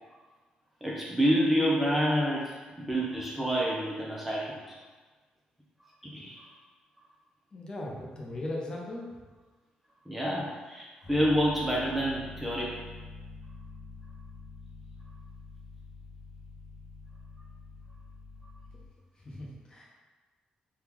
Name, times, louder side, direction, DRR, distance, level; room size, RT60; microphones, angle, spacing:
voice 1, 0.8-4.7 6.0-6.4 10.1-12.7, equal, 5° right, -5 dB, 0.5 m, -28 dB
voice 2, 7.5-9.1 19.2-20.0, left 1 dB, 30° left, -3 dB, 0.7 m, -38 dB
sound 1, 11.0-18.9, left 4 dB, 50° left, 1.3 m, -46 dB
3.6 x 2.3 x 3.0 m, 1.3 s
cardioid pair, 105°, 3 cm